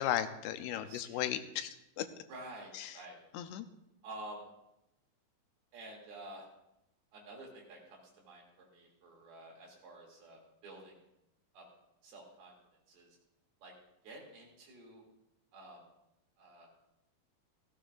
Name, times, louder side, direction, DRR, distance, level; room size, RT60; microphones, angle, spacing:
voice 1, 0.0-1.7 2.0-2.1 2.7-2.9 3.3-3.6, left 12 dB, 90° left, 10 dB, 2.7 m, -35 dB
voice 2, 0.7-1.3 2.3-3.2 4.0-4.4 5.7-6.5 7.1-8.0 8.3-10.9 11.5-11.7 12.0-12.5 12.9-13.1 13.6-13.7 14.0-15.0 15.5-15.8 16.4-16.7, right 2 dB, 70° right, -2 dB, 4.6 m, -50 dB
16.5 x 15.0 x 2.5 m, 0.87 s
omnidirectional pair, 4.6 m